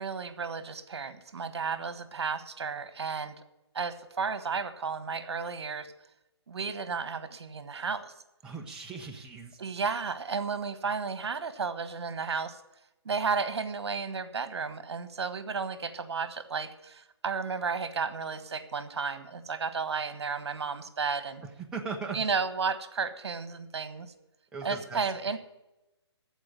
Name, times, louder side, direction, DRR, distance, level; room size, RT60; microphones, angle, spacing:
voice 1, 0.0-3.3 3.7-5.9 6.5-8.1 9.6-12.6 13.0-21.4 22.1-24.1 24.6-25.4, right 5 dB, 70° right, 12 dB, 1.4 m, -33 dB
voice 2, 8.4-9.6 21.6-22.2 24.5-25.0, right 5 dB, 5° right, 0 dB, 0.7 m, -38 dB
14.5 x 4.9 x 9.3 m, 0.95 s
hypercardioid pair, 160°, 14 cm